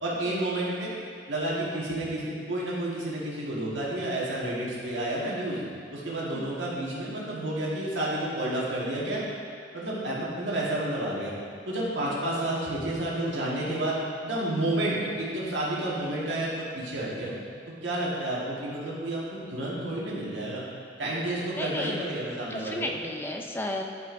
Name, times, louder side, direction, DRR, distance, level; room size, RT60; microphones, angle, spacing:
voice 1, 0.0-0.9 1.3-5.6 5.9-9.2 9.7-11.3 11.7-14.0 14.2-17.3 17.8-19.2 19.5-20.6 21.0-22.8, right 1 dB, 70° right, -6 dB, 1.6 m, -30 dB
voice 2, 21.5-22.0 22.5-23.8, left 1 dB, 10° left, 2 dB, 0.4 m, -34 dB
11.0 x 5.5 x 2.6 m, 2.3 s
head